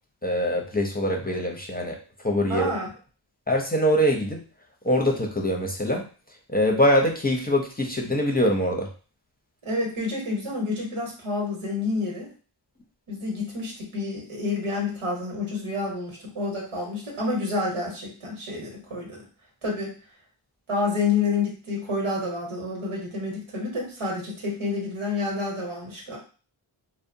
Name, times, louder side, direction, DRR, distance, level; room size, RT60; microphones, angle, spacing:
voice 1, 0.2-2.0 2.2-2.7 3.5-4.4 4.8-6.1 6.5-8.9, equal, 20° left, 0 dB, 0.6 m, -23 dB
voice 2, 2.5-2.9 9.6-12.3 13.1-19.2 19.6-19.9 20.7-26.2, left 3 dB, 85° right, -2 dB, 1.1 m, -29 dB
2.7 x 2.1 x 2.6 m, 0.37 s
cardioid pair, 45°, 49 cm